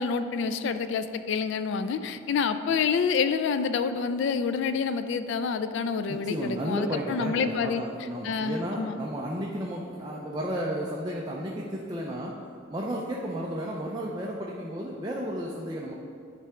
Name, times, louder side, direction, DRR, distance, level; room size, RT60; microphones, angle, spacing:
voice 1, 0.0-7.8 8.2-9.0, left 5 dB, 60° left, 11 dB, 0.3 m, -28 dB
voice 2, 6.1-12.4 12.7-15.9, equal, 20° right, -3 dB, 0.5 m, -33 dB
9.9 x 3.4 x 4.9 m, 2.5 s
head